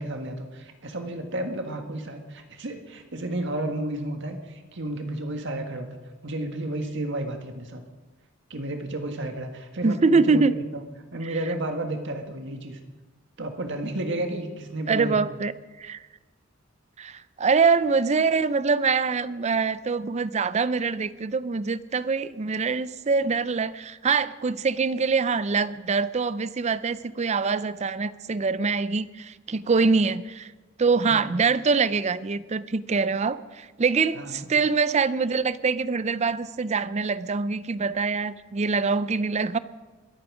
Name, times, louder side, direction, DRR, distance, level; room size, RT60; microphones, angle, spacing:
voice 1, 0.0-5.9 6.2-7.8 8.5-10.6 11.1-12.8 13.4-15.2 31.1-31.4 34.1-34.5, right 1 dB, 60° right, 5 dB, 1.7 m, -32 dB
voice 2, 9.8-10.5 14.9-15.5 15.8-16.0 17.0-30.5 30.8-39.6, right 4 dB, 35° right, 16 dB, 0.5 m, -24 dB
22.5 x 8.8 x 5.0 m, 1.3 s
head